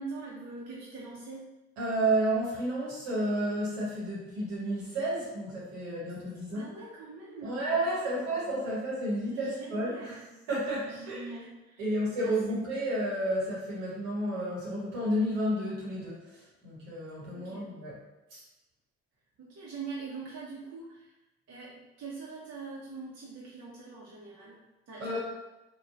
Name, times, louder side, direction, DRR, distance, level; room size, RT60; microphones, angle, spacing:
voice 1, 0.0-1.5 6.5-8.3 9.2-10.3 10.8-12.5 17.3-17.7 19.4-21.1 21.5-24.6 24.9-25.2, right 4 dB, 50° right, -6 dB, 0.7 m, -43 dB
voice 2, 1.8-6.7 7.4-10.2 10.5-11.2 11.8-18.0 18.3-18.4 25.0-25.2, right 1 dB, 85° right, -6 dB, 1.1 m, -31 dB
3.1 x 2.2 x 2.4 m, 1.0 s
hypercardioid pair, 50°, 32 cm